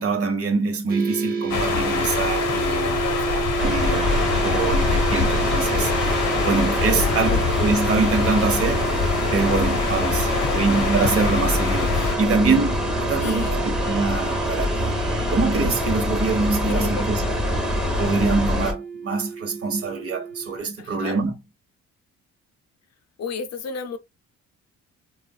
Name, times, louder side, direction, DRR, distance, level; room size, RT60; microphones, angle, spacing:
voice 1, 0.0-3.0 3.3-4.1 4.4-8.8 9.3-14.9 15.3-17.2 18.0-21.3, right 4 dB, 50° right, 0.9 m, -24 dB
sound 1, 0.9-20.6, right 6 dB, 30° right, 0.6 m, -31 dB
sound 2, 1.5-12.2, left 6 dB, 85° left, 0.8 m, -25 dB
voice 2, 2.5-3.5 6.9-7.4 10.1-10.5 13.2-13.6 16.7-17.1 20.8-21.2 23.2-24.0, left 5 dB, 60° left, 0.5 m, -33 dB
sound 3, 3.6-18.7, left 1 dB, ahead, 1.0 m, -25 dB
3.6 x 2.4 x 2.3 m
cardioid pair, 90°, 30 cm